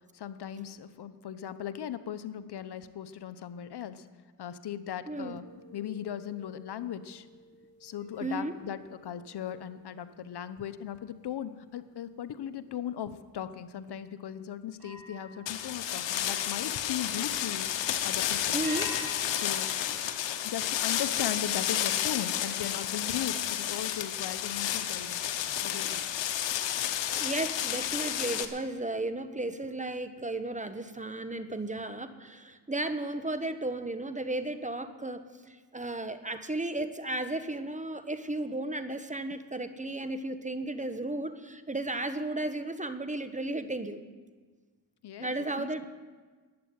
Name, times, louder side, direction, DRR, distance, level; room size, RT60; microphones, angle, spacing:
voice 1, 0.1-4.1 4.4-5.4 5.7-7.3 7.8-18.6 19.3-19.7 20.4-25.2 25.6-26.0 45.0-45.9, left 9 dB, 65° left, 12 dB, 1.0 m, -38 dB
voice 2, 5.1-5.4 8.2-8.5 18.5-18.9 27.2-44.0 45.2-45.9, right 2 dB, 15° right, 10 dB, 1.1 m, -34 dB
sound 1, 5.4-11.0 11.5-11.8 14.7-16.9 18.6-21.2, right 2 dB, 60° right, 2.7 m, -49 dB
sound 2, 15.5-28.5, left 11 dB, 85° left, 1.0 m, -31 dB
11.0 x 8.8 x 9.7 m, 1.4 s
supercardioid pair, 55°, 43 cm